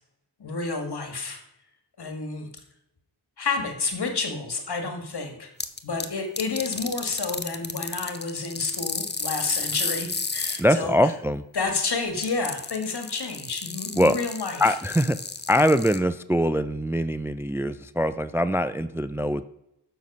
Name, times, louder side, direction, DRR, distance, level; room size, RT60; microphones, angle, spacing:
voice 1, 0.4-1.4 2.0-2.5 3.4-5.5 5.8-11.1 11.5-14.8, left 4 dB, 70° left, 5 dB, 1.7 m, -30 dB
sound 1, 5.6-6.1 6.4-10.6 12.2-16.0, left 4 dB, 25° left, 0.7 m, -32 dB
voice 2, 10.6-11.4 14.0-14.2 14.6-15.2 15.5-19.4, equal, 5° right, 13 dB, 0.3 m, -23 dB
7.2 x 6.0 x 5.3 m, 0.85 s
cardioid pair, 55°, 41 cm